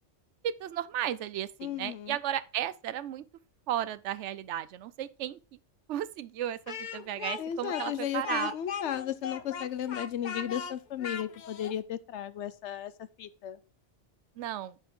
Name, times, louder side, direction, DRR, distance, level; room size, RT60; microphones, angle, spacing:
voice 1, 0.4-3.2 3.7-5.4 5.9-8.5 14.4-14.7, right 11 dB, 80° right, 0.9 m, -34 dB
voice 2, 1.6-2.2 7.4-13.6, left 10 dB, 75° left, 1.0 m, -35 dB
Speech, 6.7-11.8, left 7 dB, 50° left, 0.6 m, -38 dB
9.9 x 5.2 x 3.7 m
omnidirectional pair, 1.2 m